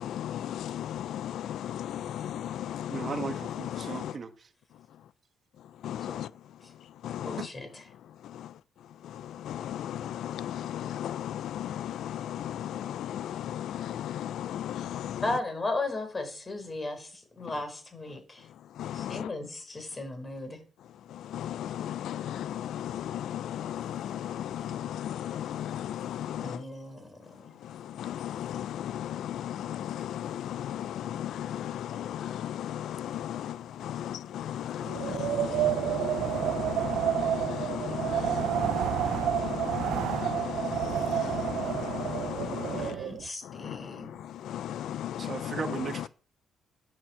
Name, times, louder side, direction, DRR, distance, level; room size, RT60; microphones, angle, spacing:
voice 1, 0.0-2.9 3.8-4.0 5.8-6.3 7.0-7.3 9.5-15.2 18.8-19.2 21.3-26.5 28.0-33.5 33.8-42.8 44.5-45.5, left 11 dB, 75° left, 0.4 m, -35 dB
voice 2, 2.9-4.3 7.4-7.5 45.2-46.1, right 5 dB, 40° right, 1.4 m, -36 dB
voice 3, 7.2-7.8 15.2-18.5 18.9-20.6 26.4-27.5 42.7-44.1, left 2 dB, 25° left, 4.2 m, -36 dB
Wind, 34.8-43.3, right 11 dB, 80° right, 0.5 m, -30 dB
9.8 x 7.5 x 7.3 m
cardioid pair, 90°, 0 cm